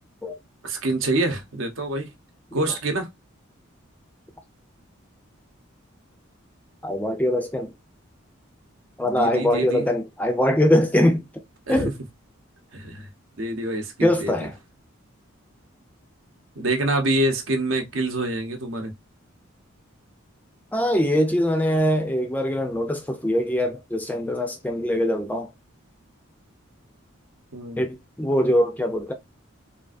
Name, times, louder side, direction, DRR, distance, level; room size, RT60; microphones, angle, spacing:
voice 1, 0.6-2.1 2.5-3.1 9.0-9.9 11.7-11.9 12.7-13.1 13.4-14.3 16.6-18.9 27.5-27.8, right 2 dB, 70° right, 0.8 m, -26 dB
voice 2, 6.8-7.7 9.0-11.3 11.7-11.9 14.0-14.6 20.7-25.5 27.8-29.1, left 1 dB, 10° left, 0.3 m, -22 dB
3.4 x 2.4 x 2.5 m
head